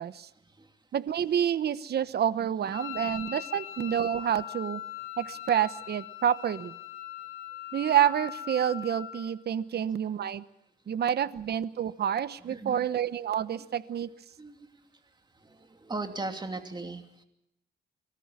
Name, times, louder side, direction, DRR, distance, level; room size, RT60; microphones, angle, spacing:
voice 1, 0.3-0.8 2.4-3.4 9.7-9.8 10.8-11.0 12.4-12.9 14.4-14.9 15.3-17.2, right 3 dB, 20° right, 6 dB, 2.9 m, -40 dB
voice 2, 0.9-4.8 5.2-6.7 7.7-10.4 10.9-14.1, right 9 dB, 55° right, 15 dB, 1.0 m, -28 dB
Wind instrument woodwind instrument, 2.7-9.3, left 12 dB, 80° left, 4.5 m, -41 dB
25.5 x 14.0 x 9.8 m, 0.84 s
cardioid pair, 90°, 20 cm